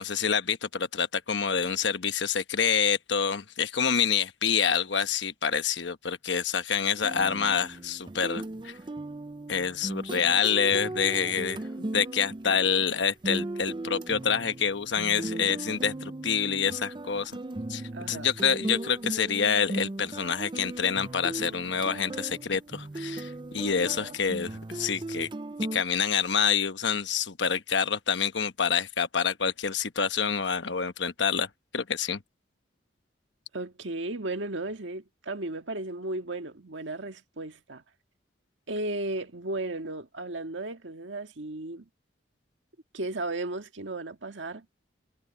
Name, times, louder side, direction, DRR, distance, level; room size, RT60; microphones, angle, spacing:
voice 1, 0.0-8.8 9.5-11.6 11.9-17.4 17.7-17.8 18.1-25.3 25.7-32.2, left 7 dB, 70° left, 1.1 m, -27 dB
sound 1, 7.0-12.9 13.2-25.8, right 2 dB, 25° right, 0.5 m, -37 dB
voice 2, 12.5-12.8 17.9-18.3 23.8-24.2 33.5-37.8 38.7-41.9 42.9-44.6, right 2 dB, 80° right, 1.7 m, -35 dB
head